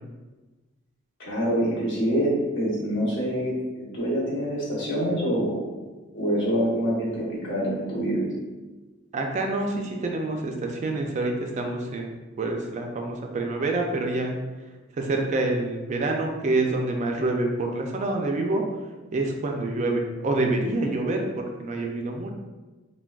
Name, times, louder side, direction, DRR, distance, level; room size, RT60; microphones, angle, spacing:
voice 1, 1.2-5.6 6.1-8.3, equal, 65° left, -5 dB, 1.0 m, -26 dB
voice 2, 9.1-14.3 15.0-18.6 19.1-22.3, right 2 dB, 35° right, 2 dB, 0.3 m, -27 dB
3.4 x 2.2 x 2.3 m, 1.2 s
head